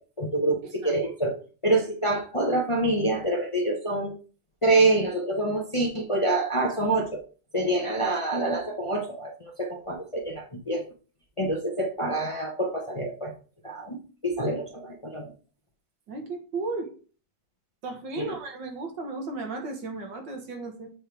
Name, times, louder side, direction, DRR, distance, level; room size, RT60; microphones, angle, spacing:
voice 1, 0.2-1.4 1.6-4.1 4.6-7.2 7.5-10.9 11.4-13.3 13.6-14.0 14.2-15.3 18.2-18.4, right 2 dB, 30° left, 1 dB, 0.6 m, -26 dB
voice 2, 16.1-16.9 17.8-20.9, right 3 dB, 85° right, 3 dB, 2.0 m, -35 dB
7.4 x 3.4 x 4.5 m, 0.38 s
omnidirectional pair, 1.9 m